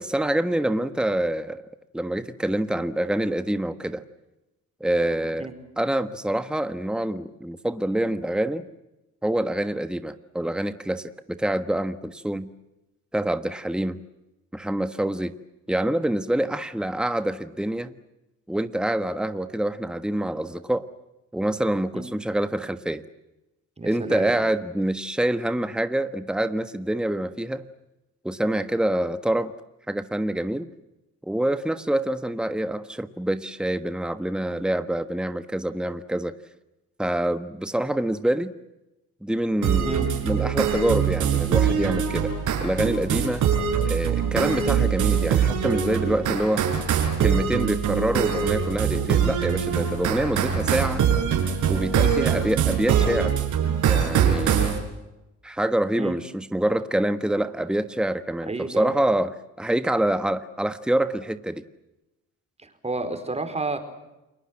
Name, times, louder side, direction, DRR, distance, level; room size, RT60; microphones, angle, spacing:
voice 1, 0.0-1.6 1.9-4.0 4.8-5.5 5.8-8.6 9.2-12.5 13.1-14.0 14.5-15.3 15.7-17.9 18.5-20.9 21.3-23.0 23.8-27.6 28.2-29.5 29.9-30.7 31.2-36.3 37.0-38.5 39.2-40.0 40.2-42.3 42.6-43.5 43.9-46.7 47.2-51.0 51.7-53.4 53.9-54.7 55.4-61.6, right 1 dB, 5° right, 10 dB, 1.4 m, -26 dB
voice 2, 23.8-24.4 39.8-40.1 52.2-52.4 56.0-56.2 58.5-58.9 62.6-63.8, right 3 dB, 20° right, 8 dB, 4.6 m, -31 dB
sound 1, 39.6-54.8, right 8 dB, 80° right, 5.9 m, -23 dB
30.0 x 21.0 x 7.7 m, 0.97 s
cardioid pair, 90°, 30 cm